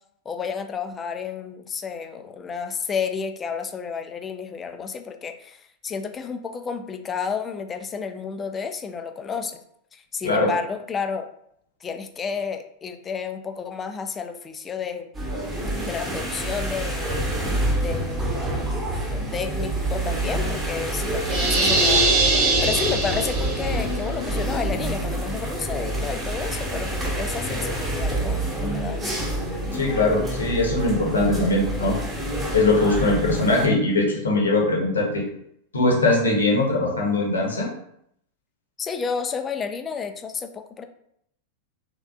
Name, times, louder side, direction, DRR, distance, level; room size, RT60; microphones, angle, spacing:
voice 1, 0.3-9.6 9.9-11.3 11.8-15.1 15.8-17.2 17.8-18.3 19.1-22.1 22.4-29.1 38.8-40.8, left 6 dB, 20° left, 7 dB, 0.3 m, -31 dB
sound 1, 15.1-33.7, right 1 dB, 15° right, 1.0 m, -27 dB
sound 2, 21.3-23.8, right 2 dB, 40° right, 0.6 m, -21 dB
voice 2, 29.7-32.0 32.5-35.2 35.7-37.7, left 2 dB, 70° left, -1 dB, 0.9 m, -21 dB
3.4 x 3.1 x 2.4 m, 0.72 s
figure-of-eight pair, 90°, 0 cm